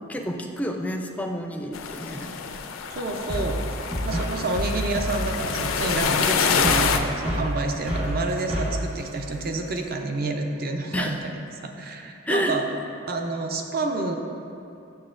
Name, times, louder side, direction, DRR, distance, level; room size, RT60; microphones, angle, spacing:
voice 1, 0.1-2.3 10.9-11.2 12.3-12.6, equal, 5° left, 3 dB, 0.4 m, -29 dB
sound 1, 1.7-7.0, left 6 dB, 80° left, 0.4 m, -26 dB
voice 2, 2.9-11.3 11.6-12.7 13.1-14.2, right 3 dB, 50° right, 4 dB, 0.5 m, -29 dB
sound 2, 3.3-9.9, equal, 30° right, 1.0 m, -30 dB
9.5 x 6.9 x 2.5 m, 2.7 s
head